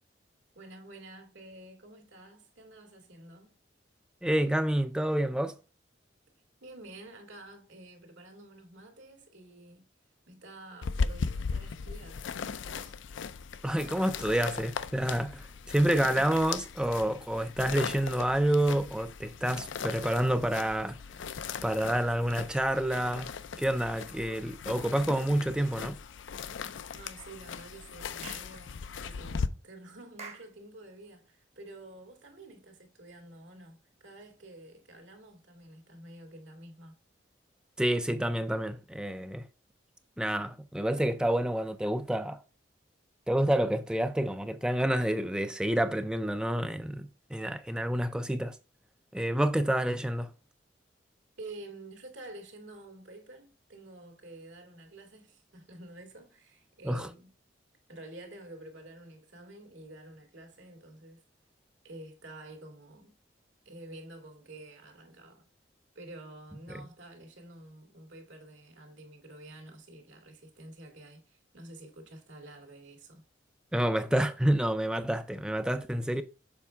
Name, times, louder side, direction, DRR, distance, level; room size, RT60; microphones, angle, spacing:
voice 1, 0.5-3.5 6.6-9.9 10.3-12.9 27.0-36.9 51.4-57.3 57.9-61.2 61.8-63.2 63.7-65.5 66.0-73.2 76.1-76.2, right 2 dB, 75° right, 2.1 m, -49 dB
voice 2, 4.2-5.6 13.6-21.0 21.6-23.3 23.6-26.0 37.8-39.5 40.2-42.4 43.3-48.6 49.1-50.3 56.8-57.1 66.7-66.8 73.7-76.2, right 1 dB, 5° right, 0.3 m, -28 dB
sound 1, 10.8-29.5, left 5 dB, 80° left, 0.4 m, -38 dB
Clapping / Chirp tweet, 28.2-28.5 30.2-30.5, right 5 dB, 35° right, 0.9 m, -44 dB
7.2 x 4.6 x 3.3 m
head